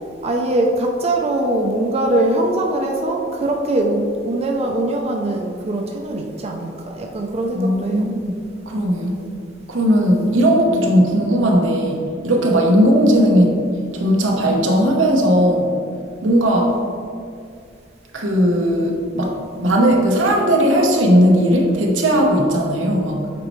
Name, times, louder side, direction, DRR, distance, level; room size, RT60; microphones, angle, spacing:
voice 1, 0.2-8.1, right 1 dB, 35° right, 1 dB, 0.5 m, -21 dB
voice 2, 7.5-8.3 8.7-9.2 9.7-13.6 13.9-15.7 16.2-16.7 18.1-23.3, equal, 90° right, 0 dB, 1.0 m, -17 dB
8.2 x 4.2 x 3.1 m, 2.3 s
head